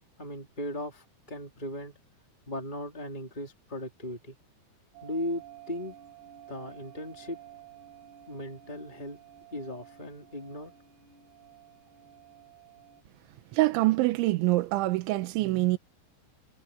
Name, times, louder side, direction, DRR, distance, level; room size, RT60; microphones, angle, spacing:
voice 1, 0.2-1.9 2.5-4.4 5.0-5.9 6.5-7.4 8.3-9.2 9.5-10.7, left 1 dB, 15° left, 2.5 m, -37 dB
sound 1, 4.9-13.0, right 11 dB, 65° right, 7.7 m, -52 dB
voice 2, 13.5-15.8, right 19 dB, 90° right, 3.3 m, -25 dB
omnidirectional pair, 5.2 m